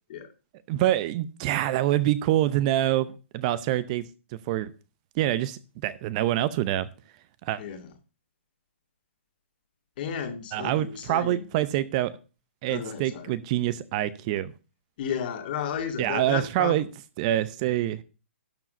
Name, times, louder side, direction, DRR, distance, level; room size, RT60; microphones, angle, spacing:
voice 1, 0.7-4.0 4.5-4.7 5.2-6.9 7.4-7.6 10.5-12.1 12.6-14.5 16.0-16.8 17.2-18.0, right 13 dB, 30° right, 0.6 m, -26 dB
voice 2, 7.6-7.9 10.0-11.5 12.7-13.3 15.0-16.8, left 8 dB, 45° left, 2.2 m, -33 dB
12.0 x 4.8 x 6.7 m
hypercardioid pair, 150°, 7 cm